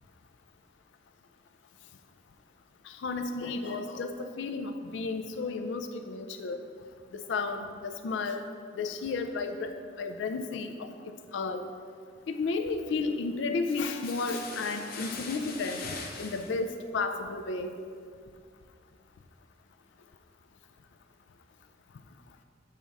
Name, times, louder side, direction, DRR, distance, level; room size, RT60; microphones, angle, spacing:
voice 1, 2.9-6.6 7.1-8.4 8.8-10.9 11.3-11.6 12.3-17.7, left 3 dB, 75° left, 6 dB, 0.4 m, -33 dB
sound 1, 14.0-16.6, left 4 dB, 55° left, 0.8 m, -41 dB
7.5 x 3.4 x 5.3 m, 2.1 s
head